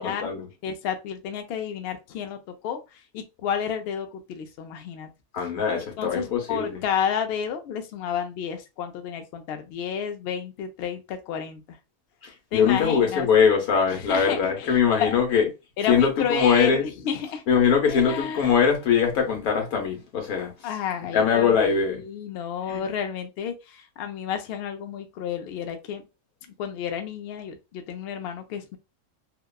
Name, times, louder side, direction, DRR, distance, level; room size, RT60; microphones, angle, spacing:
voice 1, 0.0-0.5 5.3-6.8 12.2-15.5 15.9-16.8 17.5-20.5 21.0-22.0 22.7-22.8, left 7 dB, 90° left, 1.3 m, -22 dB
voice 2, 0.6-5.1 6.0-11.8 12.5-13.3 13.9-15.1 15.8-17.4 17.8-18.5 20.6-26.0 26.5-28.8, left 7 dB, 65° left, 0.6 m, -31 dB
2.9 x 2.2 x 2.2 m
omnidirectional pair, 1.4 m